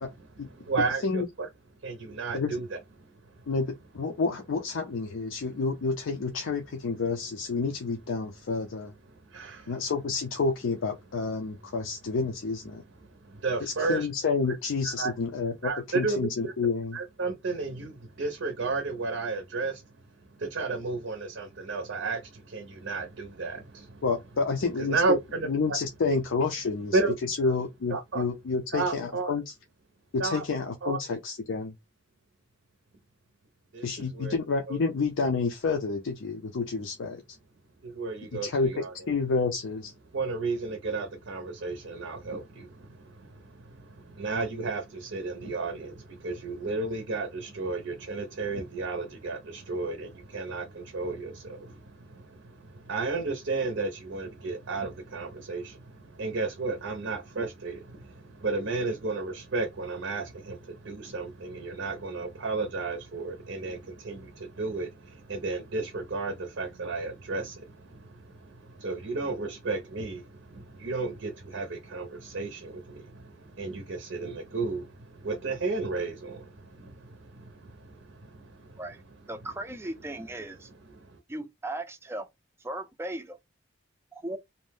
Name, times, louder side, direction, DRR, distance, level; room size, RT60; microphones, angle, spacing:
voice 1, 0.2-1.5 1.8-3.3 9.1-9.8 13.1-14.1 14.8-15.1 15.6-16.5 16.9-19.8 20.4-24.0 24.8-25.8 26.1-26.2 26.9-27.1 27.4-27.5 27.9-28.2 28.7-29.3 30.2-30.4 30.8-31.0 33.7-34.4 34.7-34.8 37.8-38.9 40.1-78.8 80.9-81.2, right 3 dB, 65° right, 0.6 m, -33 dB
voice 2, 3.5-8.9 9.7-12.8 13.6-17.0 24.0-25.2 25.4-27.0 27.3-29.5 30.1-31.7 33.8-37.2 38.4-39.9, left 4 dB, 70° left, 0.4 m, -29 dB
voice 3, 79.3-80.7 81.3-82.3 82.6-83.4 84.1-84.4, right 1 dB, 10° right, 0.3 m, -37 dB
2.6 x 2.0 x 3.3 m
head